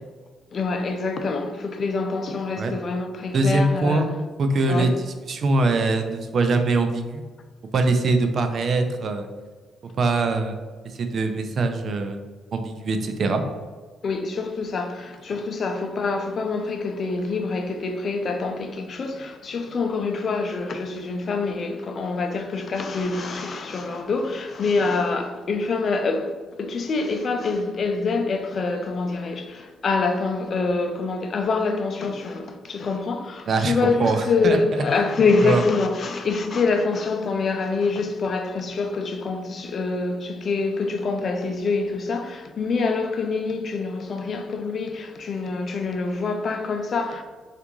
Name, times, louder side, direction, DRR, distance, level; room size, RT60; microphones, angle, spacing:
voice 1, 0.5-4.0 4.7-5.0 14.0-47.2, left 4 dB, 50° left, 0.4 m, -25 dB
voice 2, 3.3-4.1 4.4-4.9 5.3-7.2 7.7-9.3 10.0-10.6 11.0-12.2 12.5-13.4 33.5-34.6 35.4-35.6, right 3 dB, 55° right, 0.4 m, -22 dB
3.4 x 2.5 x 3.0 m
cardioid pair, 90°, 0 cm